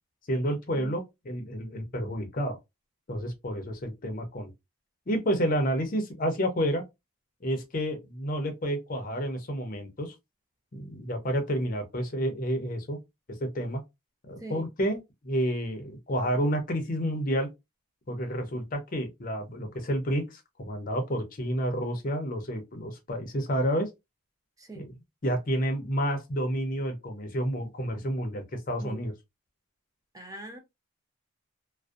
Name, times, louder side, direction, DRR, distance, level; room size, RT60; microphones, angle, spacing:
voice 1, 0.3-2.6 3.1-4.5 5.1-6.8 7.4-10.2 10.7-13.0 13.3-13.8 14.3-15.0 15.2-17.5 18.1-23.9 24.7-24.9 25.2-29.1, equal, 40° left, 0.5 m, -30 dB
voice 2, 30.1-30.6, right 2 dB, 15° right, 0.4 m, -42 dB
2.5 x 2.1 x 2.3 m
head